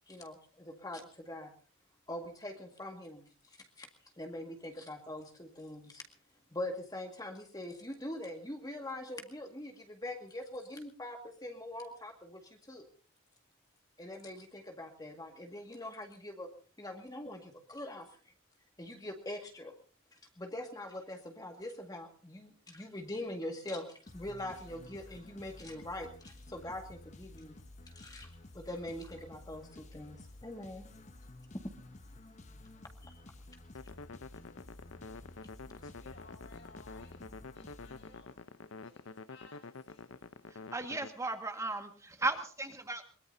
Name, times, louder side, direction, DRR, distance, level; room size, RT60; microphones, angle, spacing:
voice 1, 0.1-1.5 2.1-3.3 3.8-3.9 4.2-6.0 6.5-12.9 14.0-16.5 16.8-18.1 18.8-19.7 20.4-27.6 27.9-30.8 33.0-33.2, left 1 dB, 20° left, 3 dB, 1.9 m, -43 dB
sound 1, 24.1-38.6, left 1 dB, 35° left, 0.9 m, -53 dB
sound 2, 33.7-41.1, left 4 dB, 80° left, 0.7 m, -48 dB
voice 2, 36.0-37.2 37.5-40.1, left 3 dB, 60° left, 3 dB, 5.0 m, -59 dB
voice 3, 40.5-43.0, right 2 dB, 15° right, 6 dB, 1.7 m, -36 dB
22.5 x 21.5 x 2.7 m, 0.39 s
head